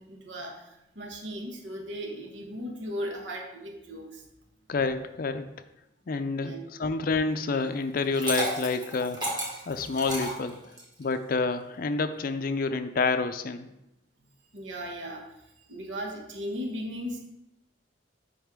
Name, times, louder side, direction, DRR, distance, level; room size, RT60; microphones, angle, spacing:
voice 1, 0.0-4.2 6.4-6.6 14.5-15.3 15.6-17.2, equal, 75° right, 2 dB, 1.2 m, -37 dB
voice 2, 4.7-5.5 6.1-9.4 9.7-10.6 11.0-13.7, left 4 dB, 50° left, 10 dB, 0.5 m, -28 dB
Liquid, 7.9-11.0, right 1 dB, 25° right, 1.8 m, -33 dB
8.8 x 5.3 x 3.7 m, 0.87 s
head